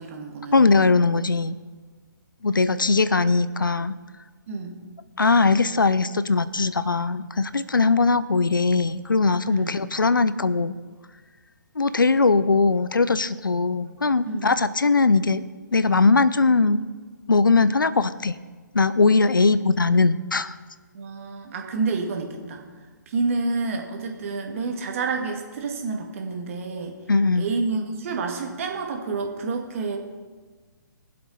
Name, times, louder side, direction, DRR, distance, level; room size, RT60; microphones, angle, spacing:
voice 1, 0.0-0.6 4.5-4.8 9.5-9.8 14.3-14.5 20.9-22.6 23.1-27.0 27.4-30.0, right 4 dB, 40° right, 2 dB, 2.0 m, -29 dB
voice 2, 0.5-1.6 2.4-4.0 5.2-10.8 11.8-15.4 15.7-16.8 17.3-18.4 18.7-20.6 27.1-27.5, left 3 dB, 80° left, 15 dB, 0.6 m, -20 dB
21.0 x 7.7 x 4.3 m, 1.4 s
figure-of-eight pair, 135°, 11 cm